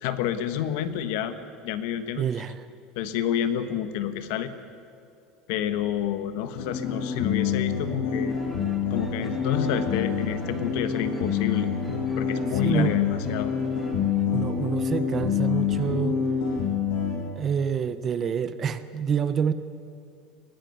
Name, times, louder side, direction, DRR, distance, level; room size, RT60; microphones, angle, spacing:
voice 1, 0.0-1.4 1.6-2.4 2.9-4.5 5.5-8.3 8.9-11.7 12.2-13.5, left 10 dB, 60° left, 11 dB, 1.4 m, -29 dB
voice 2, 2.2-2.7 12.5-12.9 13.9-14.0 14.3-16.2 17.4-19.5, right 7 dB, 25° right, 13 dB, 0.7 m, -27 dB
sound 1, 6.6-17.2, left 7 dB, 80° left, 6.8 m, -27 dB
sound 2, 8.3-14.3, right 1 dB, 5° right, 1.9 m, -46 dB
21.0 x 15.0 x 9.3 m, 2.4 s
cardioid pair, 170°, 0 cm